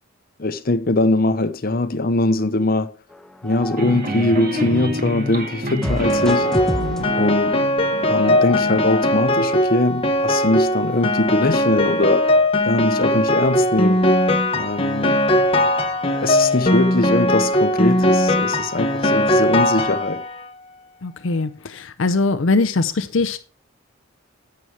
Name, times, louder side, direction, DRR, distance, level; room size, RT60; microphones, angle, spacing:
voice 1, 0.4-2.9 3.4-6.6 7.2-7.6 8.1-12.3 12.6-14.1 14.5-15.2 16.0-20.2, left 2 dB, 45° left, 0.9 m, -21 dB
sound 1, 3.1-5.3 5.8-9.2, equal, 5° left, 0.7 m, -30 dB
sound 2, 3.8-8.7, equal, 45° right, 2.2 m, -29 dB
Piano, 6.0-20.4, left 1 dB, 25° left, 1.2 m, -19 dB
voice 2, 6.8-7.1 21.0-23.4, left 3 dB, 65° left, 0.6 m, -22 dB
11.0 x 7.9 x 4.7 m
head